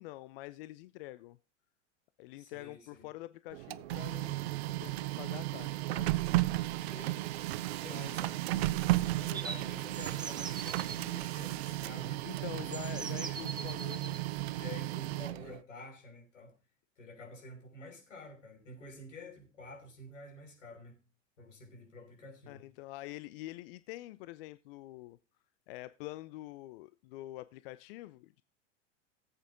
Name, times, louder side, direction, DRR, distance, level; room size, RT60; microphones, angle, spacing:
voice 1, 0.0-1.4 2.2-6.1 7.9-8.2 12.2-14.2 22.5-25.2 25.7-28.4, left 17 dB, 50° left, 0.5 m, -46 dB
voice 2, 2.4-3.1 6.8-8.4 9.1-13.4 14.5-16.6 17.0-21.0 21.4-22.6, left 1 dB, 80° left, 5.6 m, -50 dB
Printer, 3.5-15.6, right 17 dB, 60° right, 0.6 m, -34 dB
sound 1, 9.3-11.0 12.1-12.2 12.7-14.2, right 4 dB, 10° right, 0.9 m, -43 dB
17.0 x 8.2 x 3.7 m
figure-of-eight pair, 90°, 37 cm